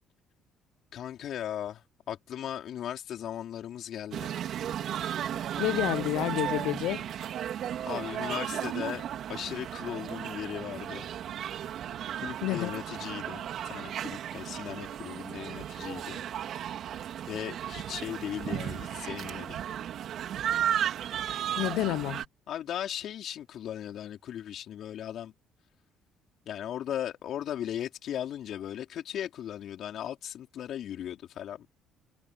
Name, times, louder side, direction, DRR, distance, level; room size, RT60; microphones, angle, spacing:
voice 1, 0.9-4.4 7.8-9.0 9.3-11.1 12.2-16.2 17.3-19.6 22.5-25.3 26.5-31.7, left 10 dB, 65° left, 4.1 m, -37 dB
sound 1, 4.1-22.2, right 10 dB, 65° right, 2.9 m, -35 dB
voice 2, 5.6-7.0 12.4-12.7 21.5-22.2, left 17 dB, 80° left, 0.8 m, -29 dB
supercardioid pair, 80°, 0 cm